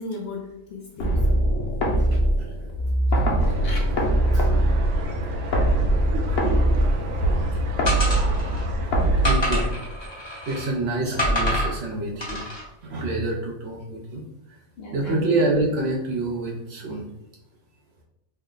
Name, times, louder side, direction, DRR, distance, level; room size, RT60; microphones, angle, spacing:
voice 1, 0.0-1.3 3.4-3.9 4.3-4.5 9.2-9.3 14.8-15.3, left 3 dB, 60° left, 0 dB, 0.7 m, -36 dB
sound 1, 1.0-10.1, right 1 dB, 90° left, 1.2 m, -22 dB
voice 2, 2.0-2.5 6.3-6.4 6.9-7.3 9.2-9.6 10.5-12.4 12.8-14.2 14.5-14.6 14.9-17.0, right 2 dB, 60° right, -1 dB, 0.8 m, -27 dB
sound 2, 3.4-9.4, equal, 85° right, 1.0 m, -29 dB
sound 3, 7.9-8.6 9.2-10.7 11.2-11.7 12.2-12.6, equal, 25° left, 0.9 m, -26 dB
3.3 x 2.1 x 3.7 m, 0.86 s
omnidirectional pair, 1.4 m